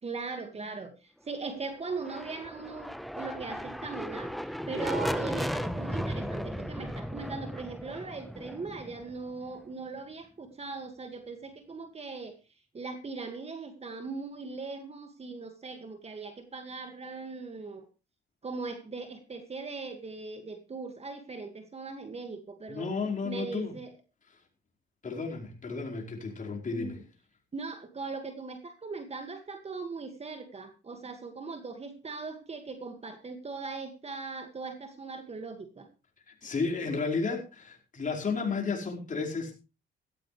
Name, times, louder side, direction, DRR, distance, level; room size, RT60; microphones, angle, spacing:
voice 1, 0.0-12.4 12.7-17.9 18.4-22.9 23.2-23.9 26.7-27.0 27.5-35.9, right 4 dB, 30° right, 7 dB, 2.0 m, -39 dB
sound 1, 1.9-9.7, equal, ahead, 1.1 m, -35 dB
voice 2, 22.7-23.7 25.0-27.0 36.3-39.6, left 4 dB, 40° left, 0 dB, 4.9 m, -33 dB
16.5 x 14.5 x 3.3 m, 0.31 s
cardioid pair, 90°, 20 cm